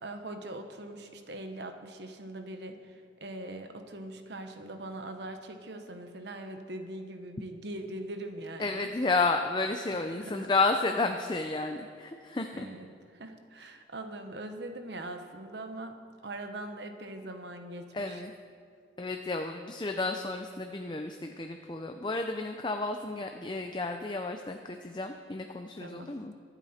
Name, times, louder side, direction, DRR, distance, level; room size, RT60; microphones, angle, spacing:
voice 1, 0.0-8.9 9.9-10.5 12.5-12.9 13.1-18.2 25.8-26.4, right 1 dB, 70° right, 6 dB, 1.1 m, -42 dB
voice 2, 8.6-12.7 17.9-18.3 19.0-26.3, left 3 dB, 25° left, 5 dB, 0.5 m, -31 dB
24.0 x 8.2 x 4.3 m, 2.3 s
head